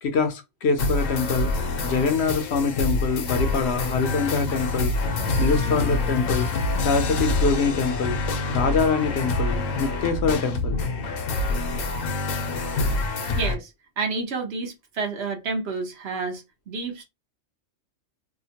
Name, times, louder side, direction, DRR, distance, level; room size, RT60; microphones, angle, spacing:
voice 1, 0.0-1.5 1.8-4.9 5.4-6.5 6.8-8.2 8.5-10.8, left 5 dB, 65° left, 0.8 m, -24 dB
sound 1, 0.8-13.5, left 2 dB, 85° left, 1.0 m, -26 dB
voice 2, 13.3-13.7 14.0-17.0, right 4 dB, 60° right, 0.9 m, -30 dB
2.8 x 2.2 x 2.8 m
omnidirectional pair, 1.3 m